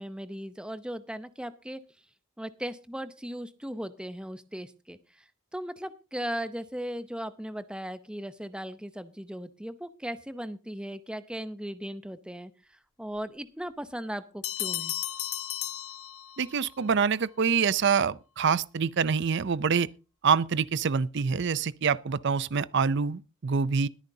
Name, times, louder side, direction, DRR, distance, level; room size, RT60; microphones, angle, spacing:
voice 1, 0.0-1.8 2.4-5.2 5.5-14.9, equal, 5° right, 0.7 m, -37 dB
Bell, 14.4-16.7, left 13 dB, 90° left, 0.9 m, -34 dB
voice 2, 16.4-19.9 20.2-23.9, right 6 dB, 55° right, 0.5 m, -26 dB
21.0 x 9.4 x 2.8 m
head